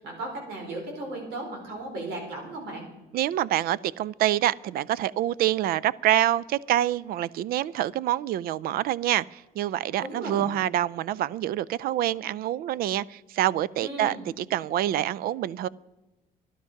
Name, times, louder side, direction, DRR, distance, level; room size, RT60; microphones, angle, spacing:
voice 1, 0.0-2.9 10.0-10.5 13.8-14.2, right 2 dB, 80° right, 1 dB, 4.8 m, -36 dB
voice 2, 3.1-15.7, right 13 dB, 60° right, 22 dB, 0.4 m, -26 dB
13.0 x 11.5 x 5.8 m, 1.1 s
cardioid pair, 110°, 17 cm